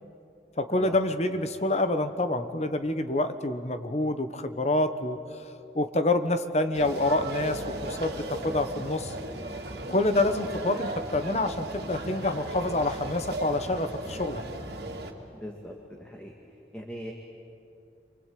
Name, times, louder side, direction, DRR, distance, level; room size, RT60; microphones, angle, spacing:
voice 1, 0.6-5.2 5.7-9.1 9.9-14.4, left 2 dB, 40° left, 9 dB, 1.3 m, -27 dB
sound 1, 6.7-15.1, right 1 dB, 70° right, 2.7 m, -36 dB
voice 2, 15.3-16.3 16.7-17.1, equal, 5° left, 0 dB, 1.9 m, -40 dB
28.0 x 24.5 x 8.7 m, 2.7 s
head